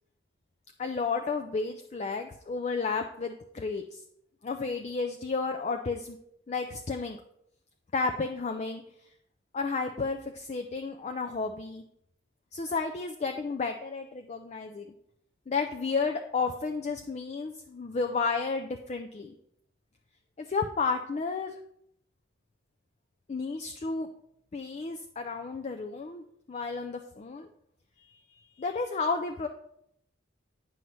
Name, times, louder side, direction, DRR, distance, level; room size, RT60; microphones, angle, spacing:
voice 1, 0.8-4.0 4.4-6.2 6.5-7.2 7.9-8.8 9.5-11.8 12.5-14.9 15.5-19.4 20.4-21.6 23.3-24.1 24.5-27.5 28.3-29.5, left 4 dB, 35° left, 5 dB, 0.4 m, -32 dB
9.2 x 5.6 x 3.1 m, 0.75 s
head